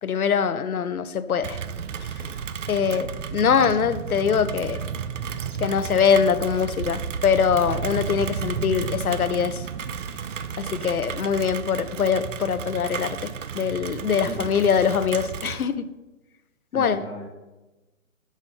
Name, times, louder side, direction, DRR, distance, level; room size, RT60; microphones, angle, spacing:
voice 1, 0.0-1.6 2.7-4.8 5.6-9.6 10.6-15.9 16.7-17.0, left 7 dB, 85° left, 13 dB, 0.6 m, -23 dB
Rain, 1.4-15.6, right 7 dB, 60° right, 0.5 m, -32 dB
voice 2, 13.5-13.9 14.2-14.8 16.7-17.3, right 2 dB, ahead, -18 dB, 0.4 m, -38 dB
6.5 x 6.1 x 4.2 m, 1.1 s
figure-of-eight pair, 135°, 42 cm